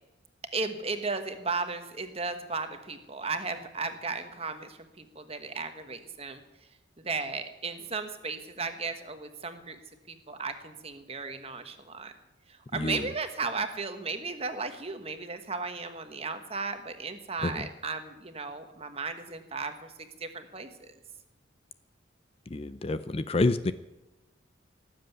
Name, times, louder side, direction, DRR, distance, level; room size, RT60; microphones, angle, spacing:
voice 1, 0.5-6.4 7.0-9.8 10.1-12.1 12.5-20.9, right 4 dB, 30° right, 8 dB, 1.3 m, -35 dB
voice 2, 12.7-13.1 17.4-17.7 22.5-23.7, left 2 dB, 30° left, 12 dB, 0.5 m, -28 dB
18.0 x 7.8 x 9.3 m, 1.0 s
head